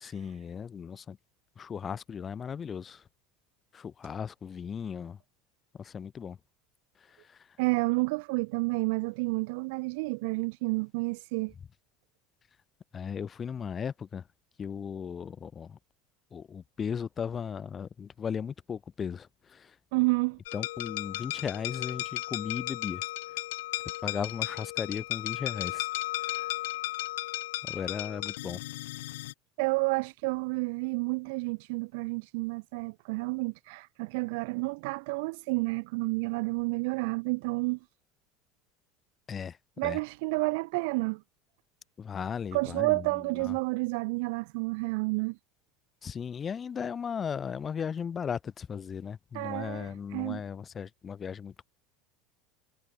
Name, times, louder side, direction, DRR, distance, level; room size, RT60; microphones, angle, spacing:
voice 1, 0.0-1.2 1.6-3.0 3.7-5.2 5.7-6.4 7.0-7.6 12.9-14.3 14.6-15.8 16.3-19.8 20.5-23.0 24.0-25.9 26.2-26.5 27.6-28.6 39.3-40.0 42.0-43.6 46.0-51.7, left 7 dB, 25° left, 2.9 m, -37 dB
voice 2, 7.6-11.5 19.9-20.4 29.6-37.8 39.8-41.2 42.5-45.4 49.3-50.4, right 27 dB, 70° right, 0.4 m, -30 dB
sound 1, 20.5-29.3, left 18 dB, 85° left, 0.9 m, -35 dB
supercardioid pair, 125°, 0 cm